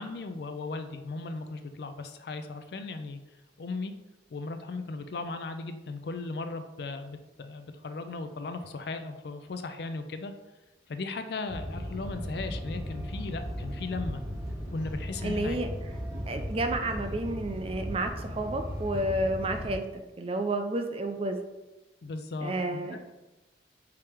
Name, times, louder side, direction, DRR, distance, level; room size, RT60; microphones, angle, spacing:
voice 1, 0.0-3.2 3.6-3.9 4.3-10.3 10.9-14.2 14.7-15.6 22.0-23.1, left 3 dB, 60° left, 8 dB, 0.4 m, -37 dB
sound 1, 11.5-19.7, equal, 5° right, 0.9 m, -36 dB
voice 2, 15.2-15.7 16.1-21.4 22.4-23.0, right 1 dB, 30° right, 6 dB, 0.4 m, -31 dB
4.8 x 2.9 x 3.5 m, 1.0 s
head